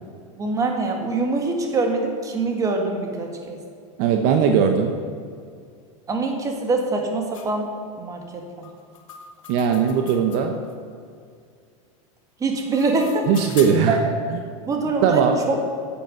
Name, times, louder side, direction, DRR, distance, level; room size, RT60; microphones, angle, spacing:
voice 1, 0.4-3.6 6.1-7.7 8.0-8.7 12.4-13.3 13.9-14.0 14.6-15.7, right 3 dB, 20° right, 2 dB, 2.0 m, -24 dB
voice 2, 4.0-4.9 9.5-10.5 13.3-14.0 14.3-14.4 15.0-15.4, right 7 dB, 50° right, 5 dB, 1.1 m, -19 dB
sound 1, 7.3-7.5 8.6-10.7 12.4-14.0, left 7 dB, 80° left, 1.9 m, -41 dB
10.5 x 8.6 x 8.0 m, 2.2 s
supercardioid pair, 145°, 17 cm